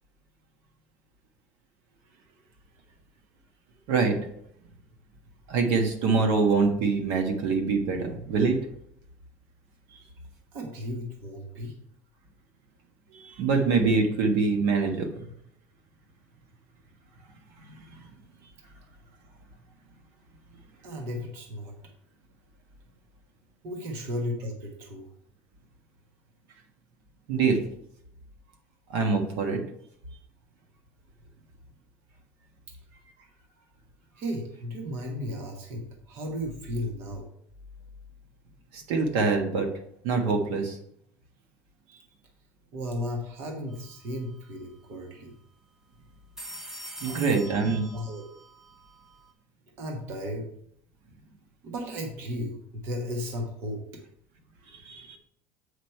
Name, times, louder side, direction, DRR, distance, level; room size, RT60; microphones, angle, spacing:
voice 1, 3.9-4.2 5.5-8.6 13.1-15.1 17.6-18.1 27.3-27.6 28.9-29.6 38.7-39.7 40.0-40.8 47.0-47.9 54.7-55.2, right 4 dB, 65° right, 4 dB, 1.4 m, -25 dB
voice 2, 10.5-11.7 20.8-21.7 23.6-25.1 34.2-37.2 42.7-45.3 47.0-47.3 47.9-48.2 49.8-50.5 51.6-53.8, equal, 45° right, 2 dB, 1.2 m, -34 dB
sound 1, 43.7-44.0 44.2-44.3 46.1-49.3, right 1 dB, 10° right, 0.7 m, -44 dB
8.0 x 5.0 x 4.5 m, 0.70 s
cardioid pair, 175°, 6 cm